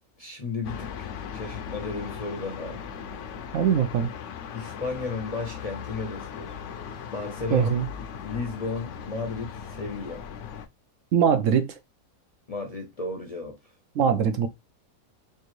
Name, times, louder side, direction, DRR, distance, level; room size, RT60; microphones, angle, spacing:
voice 1, 0.2-2.8 4.5-6.6 7.1-10.3 12.5-13.7, left 3 dB, 35° left, 0.6 m, -34 dB
sound 1, 0.6-10.7, left 7 dB, 65° left, 0.9 m, -38 dB
voice 2, 3.5-4.1 7.5-7.9 11.1-11.7 14.0-14.5, right 8 dB, 65° right, 1.0 m, -22 dB
4.5 x 2.6 x 3.0 m
omnidirectional pair, 1.5 m